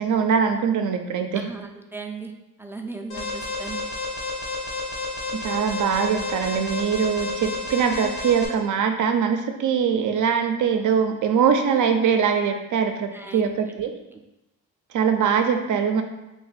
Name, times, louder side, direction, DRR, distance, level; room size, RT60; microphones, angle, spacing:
voice 1, 0.0-1.5 5.3-14.0 14.9-16.0, right 7 dB, 60° right, 6 dB, 0.5 m, -22 dB
voice 2, 1.3-2.3 2.6-3.8 13.1-13.5, right 3 dB, 5° right, 2 dB, 0.4 m, -36 dB
Alarm, 3.1-8.5, left 3 dB, 80° left, 0.8 m, -31 dB
2.6 x 2.3 x 4.0 m, 0.97 s
supercardioid pair, 55°, 35 cm